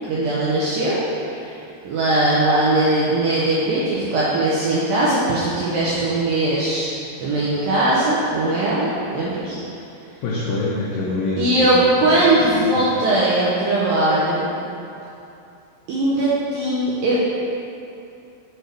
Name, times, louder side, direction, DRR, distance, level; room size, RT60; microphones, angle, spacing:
voice 1, 0.1-1.0 1.3-1.6 1.9-6.9 7.2-9.6 11.4-14.5 15.9-17.2, right 2 dB, 90° right, -8 dB, 2.0 m, -20 dB
voice 2, 10.2-12.4 12.8-12.9, left 2 dB, 85° left, -6 dB, 2.0 m, -26 dB
7.8 x 4.5 x 3.3 m, 2.7 s
omnidirectional pair, 4.9 m